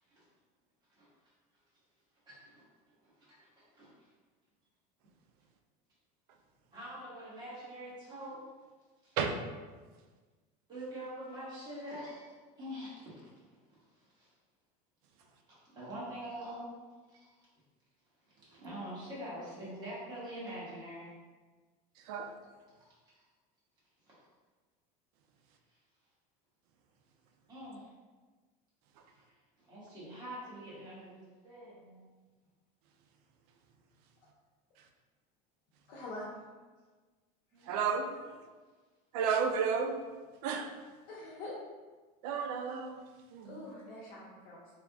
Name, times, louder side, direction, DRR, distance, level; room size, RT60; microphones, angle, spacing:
voice 1, 2.2-4.1 6.7-8.4 9.0-9.2 10.7-14.3 15.5-16.7 17.1-17.3 18.3-21.1 23.1-23.2 24.0-24.2 25.7-25.8 27.5-27.9 29.1-29.2 29.6-32.1 37.5-38.4, equal, 20° right, -8 dB, 1.4 m, -45 dB
voice 2, 35.9-36.3 41.1-41.6 43.4-44.7, left 2 dB, 70° left, -7 dB, 0.9 m, -44 dB
voice 3, 37.7-38.1 39.1-40.0 40.4-40.7 42.2-43.0 43.3-43.6, right 6 dB, 80° right, 5 dB, 0.5 m, -32 dB
3.5 x 2.4 x 3.5 m, 1.3 s
cardioid pair, 160°, 20 cm